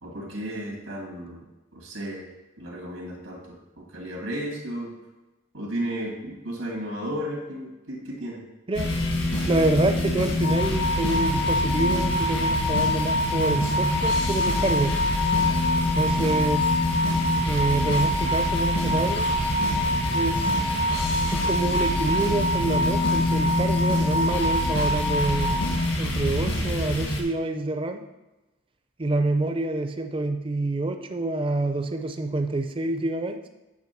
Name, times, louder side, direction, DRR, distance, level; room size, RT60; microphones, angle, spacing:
voice 1, 0.0-1.4 1.7-2.3 2.6-3.4 3.8-4.9 5.5-8.4, equal, 80° right, -1 dB, 2.2 m, -33 dB
sound 1, 8.7-27.2, left 1 dB, 80° left, 1.8 m, -26 dB
voice 2, 9.4-15.0 15.9-16.7 17.4-19.3 20.1-20.5 21.3-25.5 26.0-28.0 29.0-33.4, right 2 dB, 25° right, 6 dB, 0.5 m, -27 dB
sound 2, 10.4-25.6, left 1 dB, 55° left, 0.7 m, -27 dB
8.8 x 3.5 x 5.8 m, 1.1 s
head